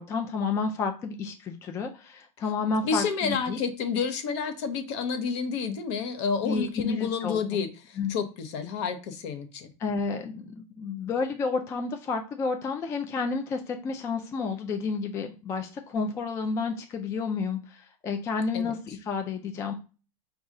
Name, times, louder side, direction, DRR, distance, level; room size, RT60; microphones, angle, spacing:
voice 1, 0.0-3.6 6.4-7.4 8.0-8.1 9.8-19.7, left 4 dB, 15° left, 5 dB, 0.3 m, -30 dB
voice 2, 2.8-9.7 18.5-18.7, left 6 dB, 55° left, 9 dB, 0.8 m, -30 dB
5.2 x 2.3 x 3.7 m, 0.34 s
supercardioid pair, 145°, 18 cm